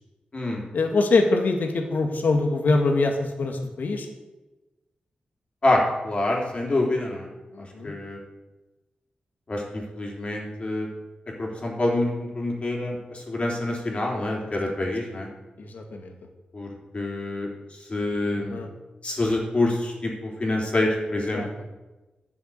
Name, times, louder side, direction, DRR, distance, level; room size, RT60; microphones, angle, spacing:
voice 1, 0.7-4.1 7.5-7.9 15.6-16.1 18.3-18.7 21.3-21.5, left 3 dB, 75° left, 4 dB, 1.9 m, -24 dB
voice 2, 5.6-7.3 7.6-8.2 9.5-10.9 11.4-15.3 16.5-16.7 16.9-17.5 17.8-18.5 19.0-21.4, left 2 dB, 40° left, -1 dB, 3.7 m, -26 dB
11.0 x 7.1 x 8.1 m, 1.1 s
cardioid pair, 75°, 3 cm